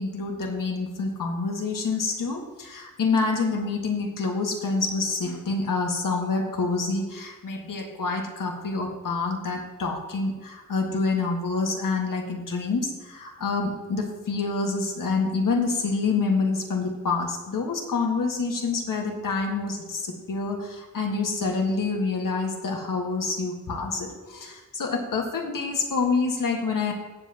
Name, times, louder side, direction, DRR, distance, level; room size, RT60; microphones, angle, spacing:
voice 1, 0.0-26.9, left 4 dB, 85° left, 2 dB, 1.7 m, -27 dB
16.5 x 7.6 x 2.9 m, 1.2 s
wide cardioid pair, 180°, 32 cm